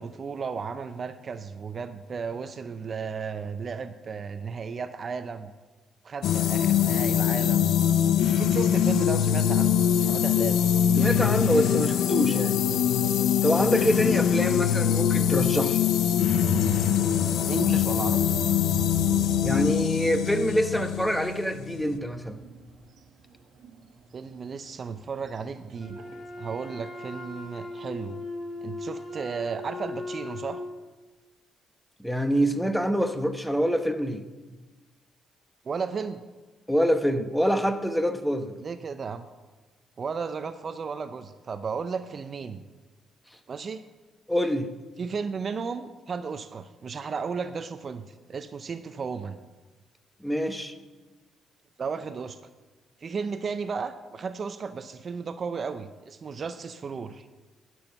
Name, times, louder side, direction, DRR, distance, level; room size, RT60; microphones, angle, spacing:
voice 1, 0.0-5.5 6.0-7.8 8.3-10.6 17.5-18.2 24.1-26.0 26.4-28.2 28.6-30.6 35.6-36.2 38.6-39.3 40.0-42.6 43.5-43.8 45.0-49.4 51.8-52.4 53.0-57.3, right 5 dB, 45° right, 10 dB, 0.6 m, -34 dB
sound 1, 6.2-22.0, left 9 dB, 80° left, 0.5 m, -23 dB
voice 2, 11.0-12.6 13.4-15.8 19.4-22.4 32.0-34.2 36.7-38.6 44.3-44.7 50.2-50.7, equal, 5° left, 8 dB, 1.0 m, -25 dB
sound 2, 16.2-23.0 23.6-24.1 24.4-24.5 24.9-26.2, right 3 dB, 75° right, 1.3 m, -38 dB
Wind instrument woodwind instrument, 25.8-30.7, left 2 dB, 35° left, 4.1 m, -38 dB
12.0 x 6.3 x 6.9 m, 1.3 s
cardioid pair, 90°, 0 cm